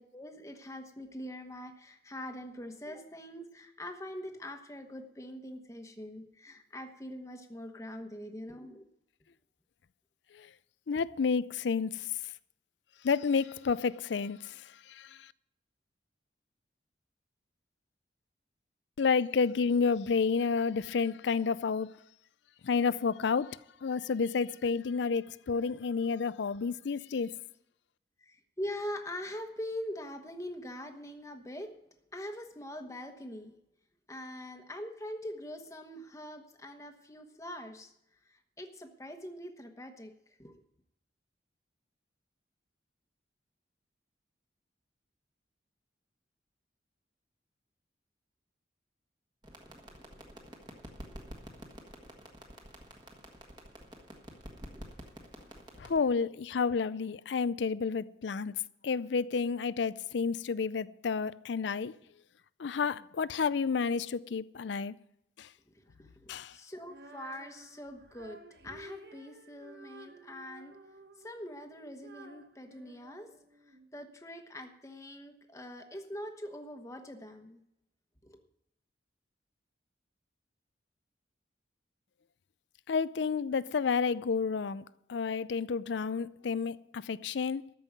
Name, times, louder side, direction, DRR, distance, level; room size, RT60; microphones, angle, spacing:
voice 1, 0.0-8.8 28.2-31.7 32.1-33.5 34.1-37.9 38.2-40.1 40.4-40.6 65.7-70.8 71.2-73.3 73.7-77.6 78.2-78.4, left 1 dB, 15° left, 1.1 m, -43 dB
voice 2, 10.9-12.3 13.0-15.3 19.0-21.9 22.6-27.4 55.8-58.5 58.8-61.9 62.6-64.9 65.4-65.5 66.3-66.6 82.9-87.7, left 5 dB, 75° left, 0.4 m, -30 dB
sound 1, 49.4-56.0, equal, 25° right, 1.5 m, -49 dB
Female singing, 66.8-73.9, right 1 dB, 55° right, 1.1 m, -53 dB
13.5 x 5.5 x 9.2 m
head